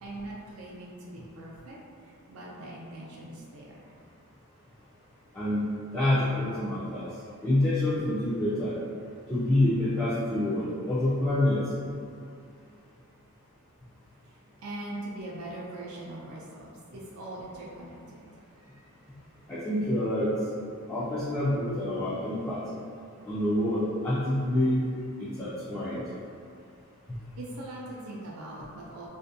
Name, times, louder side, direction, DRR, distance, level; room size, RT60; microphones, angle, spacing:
voice 1, 0.0-3.9 14.6-18.3 18.6-18.9 27.4-29.1, right 1 dB, 75° right, -4 dB, 0.4 m, -41 dB
voice 2, 5.3-5.7 5.9-7.1 7.4-8.7 9.3-11.6 19.5-20.3 20.8-22.6 23.2-24.8 25.2-26.0 27.1-27.2, left 1 dB, 15° left, -11 dB, 0.4 m, -27 dB
2.5 x 2.1 x 2.5 m, 2.3 s
head